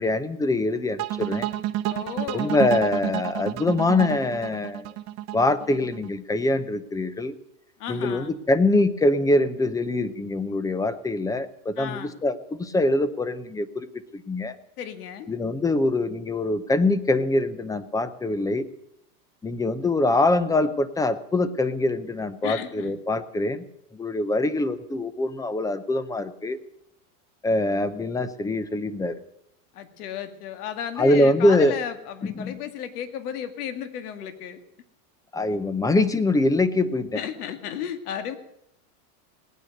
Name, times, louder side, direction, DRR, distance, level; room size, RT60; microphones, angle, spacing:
voice 1, 0.0-1.5 2.3-4.9 5.3-7.4 7.9-13.9 14.1-14.6 15.3-18.7 19.4-23.6 23.9-26.6 27.4-29.2 31.0-31.8 32.4-32.6 35.3-37.2, left 2 dB, 10° left, 14 dB, 0.7 m, -24 dB
sound 1, 1.0-6.1, right 13 dB, 35° right, 0.9 m, -30 dB
voice 2, 1.9-2.6 7.8-8.3 11.8-12.2 14.8-15.3 22.4-22.9 29.7-34.6 37.1-38.4, left 9 dB, 75° left, 9 dB, 2.2 m, -34 dB
18.5 x 9.7 x 6.5 m, 0.76 s
supercardioid pair, 145°, 46 cm